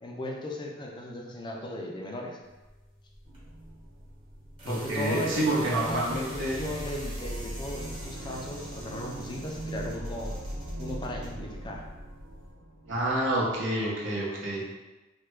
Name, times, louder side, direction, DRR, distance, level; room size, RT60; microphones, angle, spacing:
voice 1, 0.0-2.4 4.7-10.4 10.8-11.9, left 1 dB, 25° left, 0 dB, 0.4 m, -36 dB
sound 1, 2.4-12.5, equal, 30° right, 1.0 m, -46 dB
sound 2, 3.3-4.8 5.4-13.4, right 1 dB, 50° right, 0.6 m, -40 dB
voice 2, 4.6-6.6 12.9-14.7, right 1 dB, 75° right, -4 dB, 0.8 m, -28 dB
3.3 x 2.2 x 3.2 m, 1.1 s
head